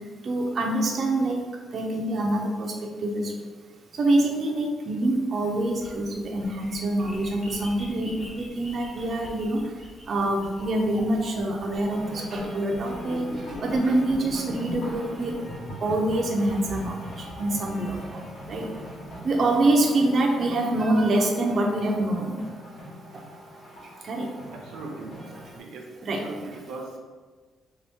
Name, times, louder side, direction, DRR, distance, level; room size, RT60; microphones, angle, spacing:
voice 1, 0.2-1.4 1.7-2.7 3.0-3.3 3.9-9.6 10.1-13.3 13.6-15.3 15.8-18.2 18.5-18.7 19.2-22.3 24.0-24.3 26.0-26.2, right 1 dB, 40° right, 0 dB, 0.5 m, -25 dB
sound 1, 5.8-19.7, left 1 dB, 10° left, 0.8 m, -41 dB
sound 2, 11.9-25.6, equal, 75° left, 1.3 m, -42 dB
voice 2, 24.5-25.2 25.5-27.0, right 2 dB, 90° right, 1 dB, 0.6 m, -39 dB
3.4 x 2.8 x 3.4 m, 1.5 s
cardioid pair, 155°, 0 cm